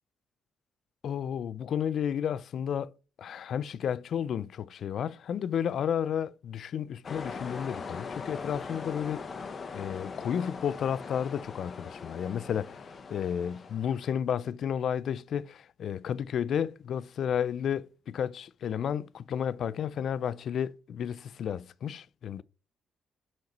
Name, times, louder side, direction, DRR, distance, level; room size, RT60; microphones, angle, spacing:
voice 1, 1.0-2.9 3.2-9.3 9.7-22.4, left 8 dB, 65° left, 0.3 m, -32 dB
sound 1, 7.0-14.1, left 5 dB, 45° left, 1.1 m, -41 dB
6.5 x 4.5 x 4.1 m
cardioid pair, 90°, 0 cm